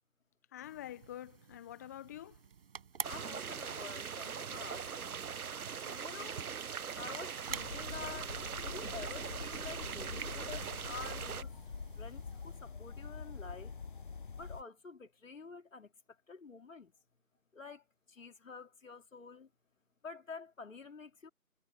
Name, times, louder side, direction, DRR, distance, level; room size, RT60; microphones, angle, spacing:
voice 1, 0.5-2.4 5.8-6.5, left 12 dB, 10° left, 1.2 m, -48 dB
sound 1, 0.6-12.6, right 6 dB, 40° right, 6.1 m, -51 dB
sound 2, 3.0-11.4, right 7 dB, 85° right, 0.7 m, -41 dB
voice 2, 3.1-5.2 6.0-6.4 7.0-11.5 12.0-13.7 14.4-15.9 16.3-16.9 17.5-19.5 20.0-21.3, left 5 dB, 60° left, 3.9 m, -49 dB
sound 3, 7.5-14.6, left 5 dB, 35° left, 0.8 m, -45 dB
figure-of-eight pair, 155°, 43 cm